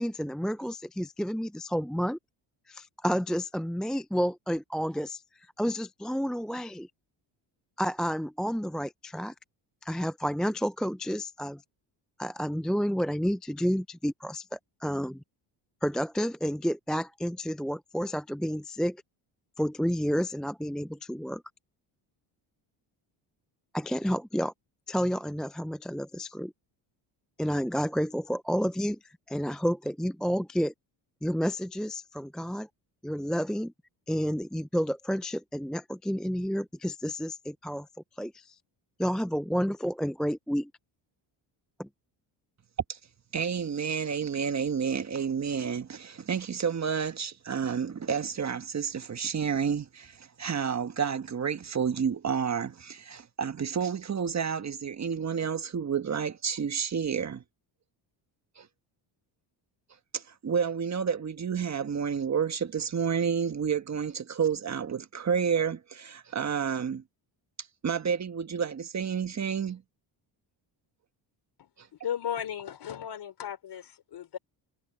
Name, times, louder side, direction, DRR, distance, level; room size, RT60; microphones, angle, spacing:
voice 1, 0.0-2.2 2.7-5.2 5.6-6.9 7.8-9.3 9.8-11.6 12.2-15.2 15.8-19.0 19.6-21.4 23.7-24.5 24.9-26.5 27.4-29.0 29.3-30.7 31.2-32.7 33.0-33.7 34.1-37.9 38.2-38.6 39.0-40.7 41.8-41.9, equal, ahead, 0.4 m, -30 dB
voice 2, 43.3-57.4 58.6-58.7 60.1-67.0 67.8-69.8, right 7 dB, 35° right, 1.4 m, -30 dB
voice 3, 72.0-74.4, left 9 dB, 55° left, 3.7 m, -35 dB
cardioid pair, 90°, 47 cm